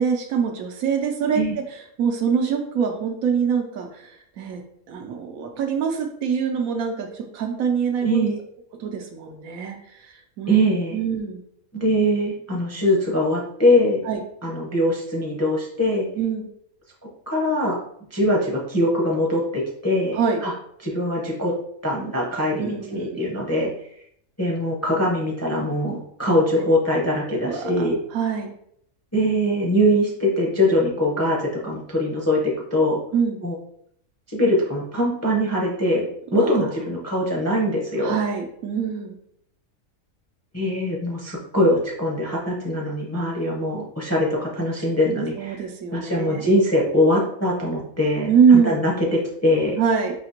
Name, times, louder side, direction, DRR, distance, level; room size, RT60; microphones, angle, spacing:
voice 1, 0.0-1.4 2.0-4.1 4.4-4.6 4.9-8.3 8.8-9.8 10.4-10.6 10.9-11.4 14.1-14.2 16.2-16.5 20.1-20.4 22.6-23.2 26.6-26.7 27.4-28.5 33.1-33.4 36.3-36.7 38.0-39.2 45.4-46.4 48.3-48.8 49.8-50.1, right 6 dB, 80° right, 4 dB, 1.1 m, -23 dB
voice 2, 8.0-8.4 10.5-11.0 11.7-14.0 14.4-16.1 17.3-17.8 18.1-20.5 20.8-21.5 21.8-23.7 24.4-28.0 29.1-33.0 33.4-33.5 34.3-38.2 40.5-45.6 45.9-49.8, left 1 dB, 15° left, -2 dB, 0.6 m, -22 dB
5.1 x 2.8 x 2.9 m, 0.69 s
omnidirectional pair, 1.5 m